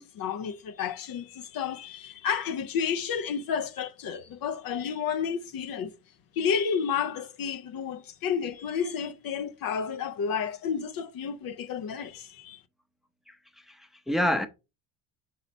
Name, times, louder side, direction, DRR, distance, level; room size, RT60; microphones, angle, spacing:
voice 1, 0.0-5.9 6.3-12.6, left 7 dB, 50° left, 0.7 m, -31 dB
voice 2, 13.3-14.5, equal, ahead, 0.7 m, -29 dB
5.8 x 4.1 x 4.0 m
supercardioid pair, 70°, 43 cm